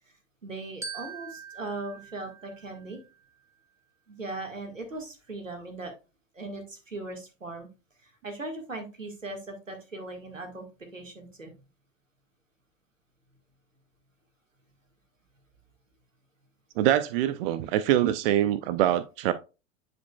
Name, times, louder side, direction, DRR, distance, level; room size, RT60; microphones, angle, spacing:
voice 1, 0.4-3.0 4.1-5.9 6.3-7.7 8.0-11.5, right 2 dB, 90° right, 1.8 m, -39 dB
Glockenspiel, 0.8-3.3, right 5 dB, 10° right, 1.0 m, -43 dB
voice 2, 16.8-19.3, right 12 dB, 50° right, 0.5 m, -24 dB
9.3 x 5.1 x 2.3 m
figure-of-eight pair, 90°, 38 cm